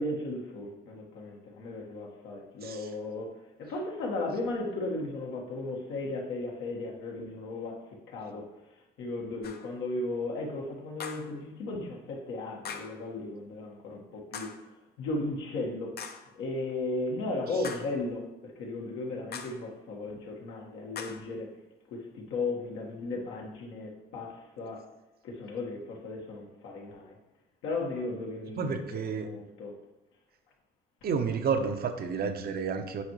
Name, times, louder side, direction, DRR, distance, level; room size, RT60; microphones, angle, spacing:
voice 1, 0.0-8.5 9.0-14.5 15.0-16.0 16.3-21.5 21.9-24.9 25.2-27.2 27.6-29.7, left 2 dB, 80° left, 1.4 m, -36 dB
sound 1, 9.4-9.7 11.0-11.4 12.6-13.0 14.3-14.7 16.0-16.3 17.6-18.0 19.3-19.7 21.0-21.3, left 6 dB, 55° left, 0.7 m, -41 dB
voice 2, 28.6-29.3 31.0-33.0, right 5 dB, 50° right, 0.8 m, -30 dB
8.3 x 4.6 x 3.1 m
supercardioid pair, 65°, 20 cm